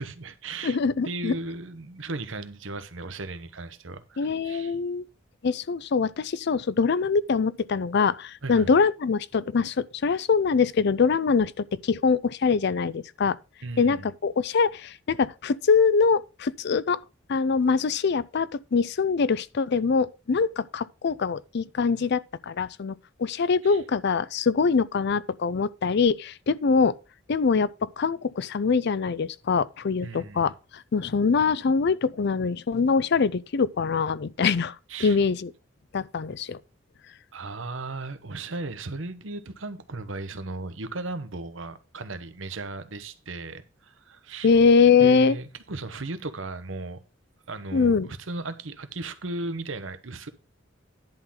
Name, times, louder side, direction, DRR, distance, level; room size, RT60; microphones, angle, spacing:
voice 1, 0.0-0.8 1.0-4.8 8.4-8.7 13.6-14.1 23.6-23.8 30.0-30.5 34.9-35.2 37.3-44.5 45.0-47.0 47.5-50.3, right 2 dB, 75° right, 1.0 m, -36 dB
voice 2, 0.6-1.3 4.2-5.0 5.4-13.4 13.8-17.0 17.3-27.0 27.3-34.8 35.0-35.5 35.9-36.6 44.4-45.4 47.7-48.1, left 5 dB, 60° left, 0.5 m, -23 dB
11.0 x 3.9 x 7.2 m
head